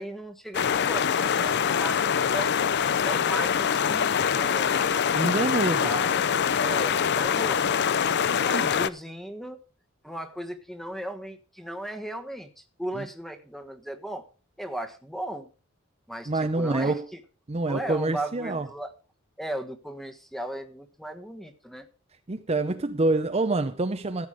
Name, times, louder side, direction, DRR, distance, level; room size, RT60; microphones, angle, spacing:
voice 1, 0.0-2.5 3.0-5.1 5.8-6.2 6.6-7.7 8.4-9.6 10.0-14.3 14.6-15.5 16.1-17.2 17.6-18.9 19.4-21.9, right 1 dB, ahead, 1.3 m, -36 dB
sound 1, 0.5-8.9, left 7 dB, 55° left, 0.5 m, -24 dB
voice 2, 5.1-5.9 8.5-8.7 12.9-13.0 16.3-17.1 17.5-18.7 22.3-24.3, right 2 dB, 30° right, 0.7 m, -26 dB
14.5 x 8.2 x 4.9 m
head